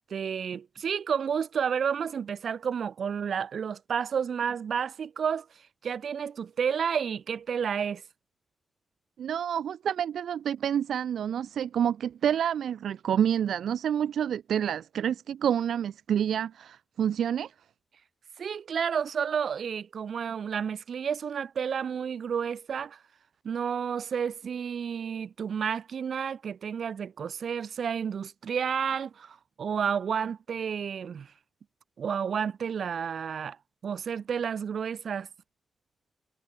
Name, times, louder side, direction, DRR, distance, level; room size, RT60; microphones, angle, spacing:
voice 1, 0.1-5.5 5.8-8.0 18.4-23.0 23.4-31.3 32.0-33.6 33.8-35.3, right 7 dB, 70° right, 6.3 m, -31 dB
voice 2, 9.2-17.5, right 9 dB, 90° right, 2.2 m, -28 dB
cardioid pair, 85°, 0 cm